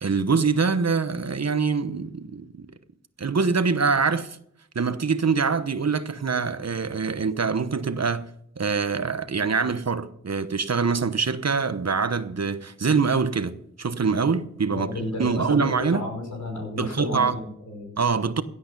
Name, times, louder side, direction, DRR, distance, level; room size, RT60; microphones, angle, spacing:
voice 1, 0.0-2.7 3.2-4.4 4.7-8.3 8.6-14.9 15.2-16.0 16.8-17.4 18.0-18.4, right 5 dB, 60° right, 1.0 m, -24 dB
voice 2, 14.7-18.0, left 2 dB, 80° left, 5.4 m, -32 dB
16.0 x 8.6 x 5.4 m
wide cardioid pair, 50°, 29 cm